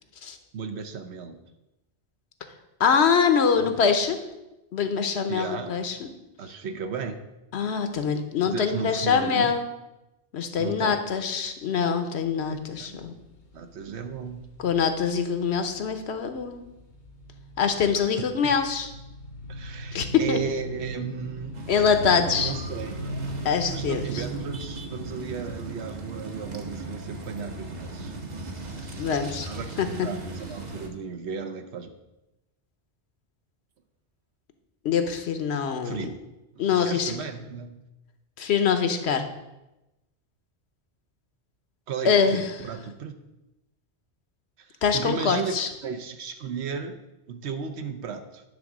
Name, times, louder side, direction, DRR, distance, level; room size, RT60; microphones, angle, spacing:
voice 1, 0.5-1.4 3.5-3.7 5.3-5.8 6.4-7.2 8.4-9.6 10.6-11.3 12.5-13.0 13.5-14.5 18.2-18.6 19.5-21.6 22.4-23.0 23.7-28.1 28.4-29.0 29.4-31.9 35.8-36.2 36.5-37.7 41.9-43.1 44.6-47.0 47.3-48.4, right 6 dB, 75° right, 7 dB, 1.0 m, -35 dB
voice 2, 2.8-4.2 4.7-6.1 7.5-9.6 10.3-13.1 14.6-16.6 17.6-18.9 19.9-20.4 21.7-22.5 23.4-24.2 29.0-29.5 29.8-30.1 34.8-36.1 36.6-37.1 38.4-39.2 42.0-42.4 44.8-45.7, left 6 dB, 75° left, 7 dB, 1.0 m, -24 dB
sound 1, 12.3-29.5 29.9-30.0, right 2 dB, 90° left, 1.4 m, -40 dB
sound 2, 21.5-30.9, right 2 dB, 45° right, 0.9 m, -37 dB
9.8 x 3.7 x 6.0 m, 0.96 s
omnidirectional pair, 1.1 m